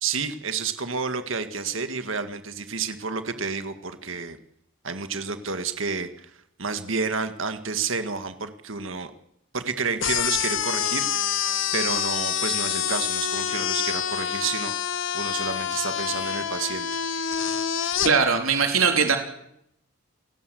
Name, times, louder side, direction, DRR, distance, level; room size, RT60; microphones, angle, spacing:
voice 1, 0.0-4.4 4.8-6.3 6.6-9.1 9.5-11.5 11.7-14.7 15.1-16.9, right 5 dB, 70° right, 9 dB, 1.9 m, -30 dB
sound 1, 10.0-18.1, left 8 dB, 65° left, 1.3 m, -27 dB
voice 2, 18.0-19.2, right 5 dB, 85° right, 4 dB, 3.7 m, -20 dB
28.5 x 18.0 x 7.9 m, 0.76 s
head